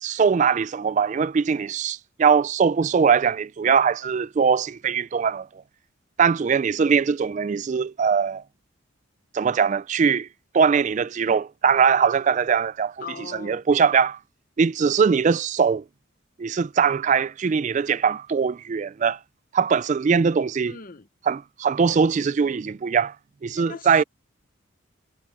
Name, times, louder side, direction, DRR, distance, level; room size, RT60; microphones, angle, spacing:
voice 1, 0.0-5.5 6.2-8.4 9.3-10.3 10.5-13.0 13.3-14.2 14.6-15.8 16.4-19.2 19.5-20.8 21.2-23.2 23.4-24.0, right 6 dB, 35° right, 0.3 m, -21 dB
voice 2, 13.0-13.6 20.7-21.1 23.5-24.0, left 5 dB, 40° left, 0.8 m, -39 dB
head